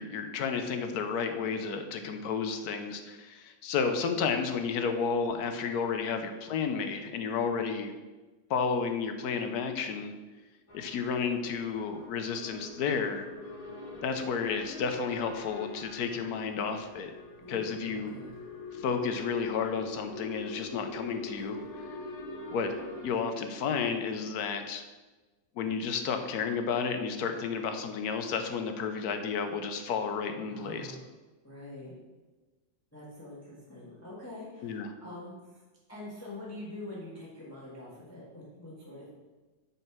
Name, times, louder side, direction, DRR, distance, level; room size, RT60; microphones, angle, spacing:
voice 1, 0.0-7.9 8.5-10.1 10.7-13.3 14.0-17.1 17.5-18.1 18.7-21.9 22.5-22.7 23.0-24.8 25.6-30.9 34.6-34.9, left 5 dB, 65° left, 6 dB, 1.1 m, -32 dB
sound 1, 10.7-23.1, left 3 dB, 35° left, 0.5 m, -44 dB
voice 2, 17.4-18.3 30.5-31.0 31.4-32.0 32.9-35.6 35.9-39.1, left 1 dB, 10° left, -6 dB, 1.4 m, -45 dB
6.7 x 4.2 x 5.9 m, 1.2 s
omnidirectional pair, 1.9 m